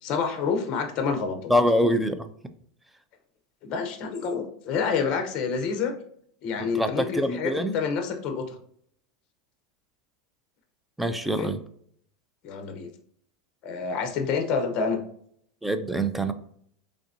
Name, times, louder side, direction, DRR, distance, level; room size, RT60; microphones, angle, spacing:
voice 1, 0.0-1.5 3.6-5.9 6.4-8.6 11.4-11.5 12.4-12.9 13.6-15.0, left 5 dB, 40° left, 6 dB, 0.7 m, -28 dB
voice 2, 1.5-2.3 6.8-7.8 11.0-11.6 15.6-16.3, equal, 5° right, 9 dB, 0.3 m, -24 dB
3.8 x 3.4 x 2.6 m, 0.65 s
supercardioid pair, 145°, 3 cm